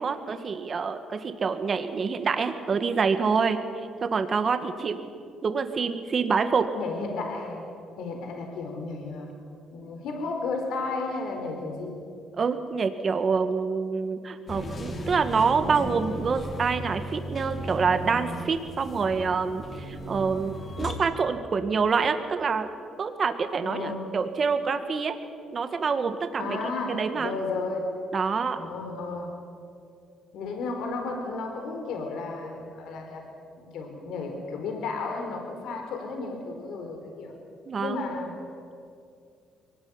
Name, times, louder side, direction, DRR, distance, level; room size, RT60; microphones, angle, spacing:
voice 1, 0.0-3.6 4.1-5.0 5.4-6.7 12.3-22.7 23.0-25.2 25.5-26.6 26.9-27.3 28.1-28.6 37.7-38.0, right 5 dB, 40° right, 8 dB, 1.9 m, -26 dB
voice 2, 6.7-7.7 8.0-9.4 9.7-12.0 23.6-24.1 26.4-27.9 28.6-29.3 30.3-33.2 33.6-37.3 37.8-38.4, left 3 dB, 80° left, 3 dB, 4.2 m, -33 dB
sound 1, 14.5-20.9, equal, 35° left, 3.8 m, -36 dB
23.5 x 18.5 x 9.7 m, 2.4 s
cardioid pair, 100°, 0 cm